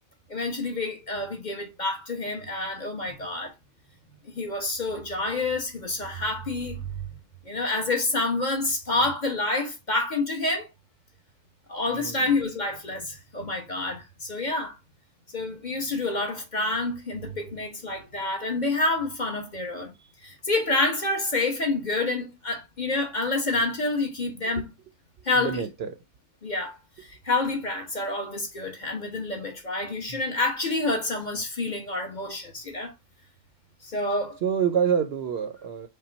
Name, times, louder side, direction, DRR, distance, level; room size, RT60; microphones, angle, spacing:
voice 1, 0.3-3.5 4.2-6.8 7.4-10.7 11.7-14.8 15.3-19.9 20.2-24.7 25.2-25.6 26.4-26.8 27.1-32.9 33.8-34.4, left 2 dB, 35° left, 1.3 m, -28 dB
voice 2, 11.9-12.2 24.5-24.6 25.4-25.9 30.1-30.2 34.4-35.9, right 7 dB, 60° right, 0.7 m, -27 dB
5.5 x 2.2 x 4.0 m
omnidirectional pair, 1.3 m